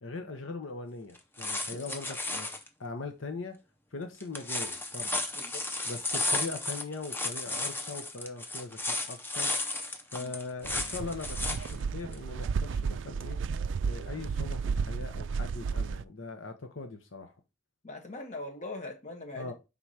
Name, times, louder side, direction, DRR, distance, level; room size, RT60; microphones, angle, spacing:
voice 1, 0.0-2.5 2.8-3.6 3.9-5.2 5.8-9.5 10.1-13.4 13.8-17.3 19.4-19.5, left 3 dB, 75° left, 0.9 m, -40 dB
sound 1, 1.2-2.7 4.2-11.7 12.1-12.2, left 2 dB, 10° left, 0.6 m, -33 dB
voice 2, 5.3-5.6 7.5-7.7 10.1-10.3 17.8-19.5, left 2 dB, 35° left, 1.4 m, -42 dB
sound 2, 10.6-16.0, right 5 dB, 65° right, 0.3 m, -33 dB
4.7 x 3.8 x 5.6 m
head